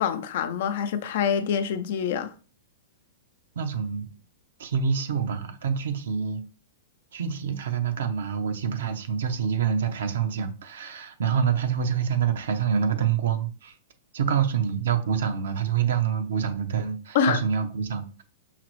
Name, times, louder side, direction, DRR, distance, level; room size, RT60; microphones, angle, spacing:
voice 1, 0.0-2.3 17.1-17.4, left 7 dB, 60° left, 0.5 m, -25 dB
voice 2, 3.5-4.1 4.6-6.4 7.1-13.7 14.1-18.2, right 7 dB, 75° right, 0.7 m, -26 dB
5.7 x 2.0 x 3.0 m
hypercardioid pair, 130°, 0 cm